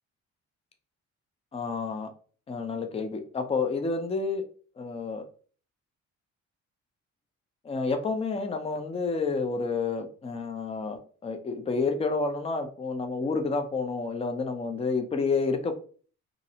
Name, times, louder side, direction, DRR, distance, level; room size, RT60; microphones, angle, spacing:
voice 1, 1.5-2.1 2.5-4.4 4.8-5.2 7.6-15.7, left 4 dB, 20° left, 6 dB, 0.4 m, -29 dB
2.5 x 2.0 x 2.7 m, 0.42 s
cardioid pair, 90°, 30 cm